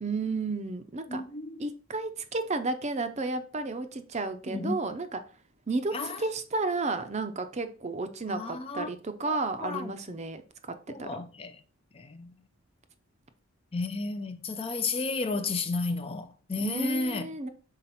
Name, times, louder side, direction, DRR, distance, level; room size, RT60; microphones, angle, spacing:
voice 1, 0.0-1.2 1.6-5.2 5.7-11.2 16.6-17.5, right 3 dB, 30° right, 0.6 m, -32 dB
voice 2, 1.1-1.6 4.5-4.7 5.9-6.2 8.3-8.9 9.6-9.9 10.9-11.6 11.9-12.3 13.7-17.3, left 3 dB, 25° left, 0.4 m, -32 dB
5.8 x 4.3 x 4.1 m
head